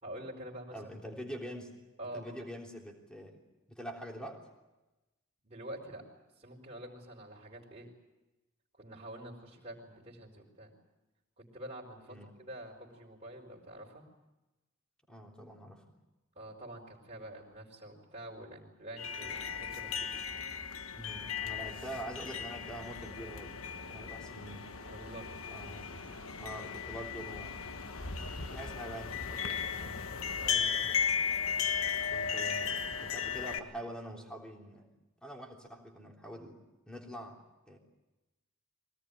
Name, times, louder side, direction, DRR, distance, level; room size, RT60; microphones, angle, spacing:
voice 1, 0.0-0.8 2.0-2.4 5.4-6.1 6.4-7.9 8.7-10.7 11.4-14.1 16.4-20.1 24.9-25.3 30.4-30.9, right 1 dB, 30° right, -3 dB, 4.3 m, -47 dB
voice 2, 0.7-1.8 2.1-3.4 3.7-4.4 12.1-12.3 15.1-15.8 20.9-24.6 25.5-27.7 28.4-30.0 32.1-34.9 35.2-36.6 36.9-37.4 37.7-37.8, right 1 dB, 5° left, 0 dB, 3.4 m, -45 dB
sound 1, 19.0-33.6, left 6 dB, 80° left, 1.3 m, -36 dB
23.5 x 18.0 x 10.0 m, 1.0 s
head